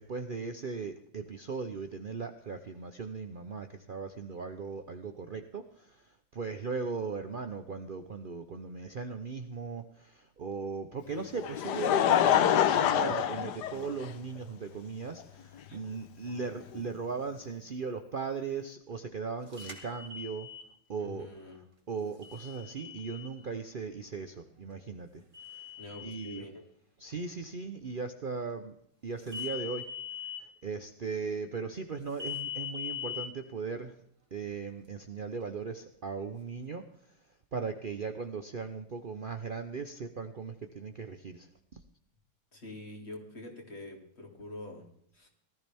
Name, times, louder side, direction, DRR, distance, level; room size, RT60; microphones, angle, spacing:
voice 1, 0.0-20.5 20.9-21.3 21.9-25.2 25.5-25.7 26.0-26.4 27.0-28.8 29.0-29.9 30.4-34.0 34.3-36.8 37.5-41.8, right 5 dB, 70° right, 7 dB, 0.4 m, -38 dB
Laughter, 11.1-14.4 15.2-15.3 16.8-16.9, left 10 dB, 65° left, 1.3 m, -26 dB
sound 1, 19.5-20.7 22.2-23.3 25.3-26.4 29.3-30.4 32.2-33.3, left 9 dB, 15° right, 2.1 m, -40 dB
voice 2, 21.0-21.6 25.8-26.6 42.5-44.9 45.1-45.3, left 2 dB, 35° left, 2 dB, 2.8 m, -45 dB
18.5 x 13.5 x 3.5 m, 0.68 s
omnidirectional pair, 2.1 m